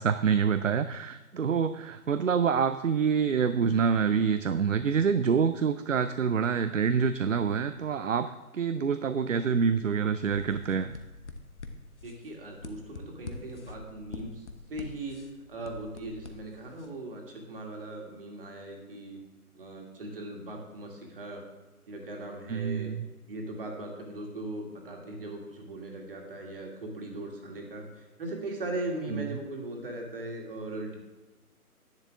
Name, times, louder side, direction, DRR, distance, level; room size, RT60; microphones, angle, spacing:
voice 1, 0.0-10.9 22.5-23.1 29.1-29.4, right 6 dB, 60° right, 11 dB, 0.5 m, -26 dB
sound 1, 10.3-16.9, left 3 dB, 50° left, 1.0 m, -45 dB
voice 2, 12.0-19.2 19.5-21.4 21.9-22.9 23.3-30.9, right 2 dB, 40° right, 1 dB, 2.1 m, -39 dB
10.5 x 9.8 x 3.5 m, 1.1 s
figure-of-eight pair, 145°, 45 cm